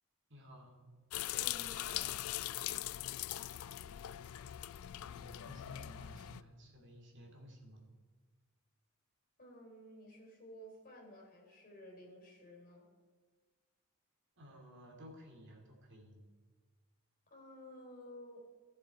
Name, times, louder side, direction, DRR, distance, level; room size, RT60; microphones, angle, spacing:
voice 1, 0.3-0.9 5.0-7.8 14.4-16.2, equal, 55° right, 1 dB, 2.6 m, -55 dB
sound 1, 1.1-6.4, left 14 dB, 70° left, 0.3 m, -41 dB
voice 2, 1.3-2.2 9.4-12.9 17.3-18.5, left 1 dB, 40° left, -2 dB, 3.4 m, -53 dB
16.0 x 7.2 x 4.7 m, 1.5 s
head